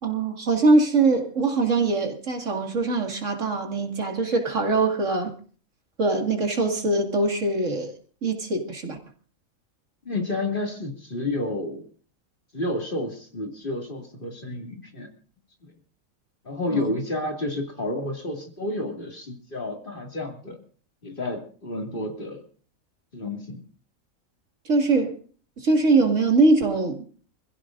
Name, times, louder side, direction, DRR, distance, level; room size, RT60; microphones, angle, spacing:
voice 1, 0.0-5.3 6.0-7.9 8.2-9.0 16.7-16.9 24.7-25.2 25.6-27.0, right 3 dB, 60° right, 3 dB, 2.4 m, -22 dB
voice 2, 10.1-11.9 12.5-15.1 15.6-15.7 16.4-20.6 21.0-22.4 23.1-23.6, left 2 dB, 40° left, 2 dB, 2.5 m, -30 dB
26.5 x 15.5 x 2.5 m, 0.42 s
omnidirectional pair, 1.4 m